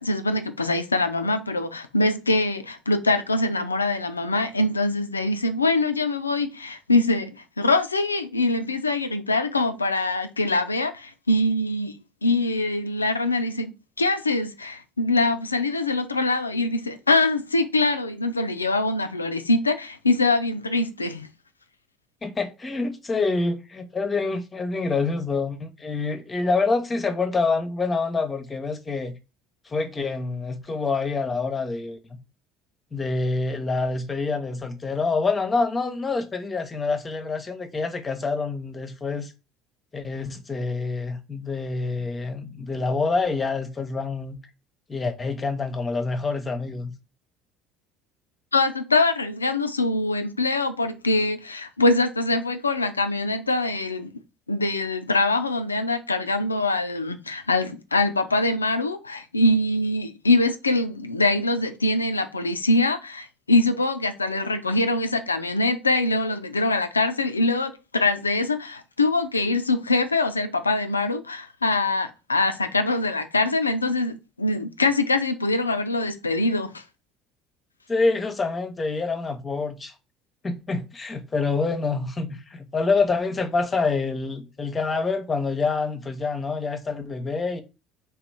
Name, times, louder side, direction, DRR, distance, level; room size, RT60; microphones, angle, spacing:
voice 1, 0.0-13.7 14.0-21.3 48.5-54.1 54.5-76.8, left 2 dB, 85° left, 0.4 m, -23 dB
voice 2, 22.2-29.1 29.6-32.2 32.9-39.3 39.9-44.4 44.9-46.9 77.9-79.9 80.4-87.6, left 4 dB, 25° left, 0.8 m, -26 dB
3.4 x 3.0 x 4.7 m
figure-of-eight pair, 60°, 0 cm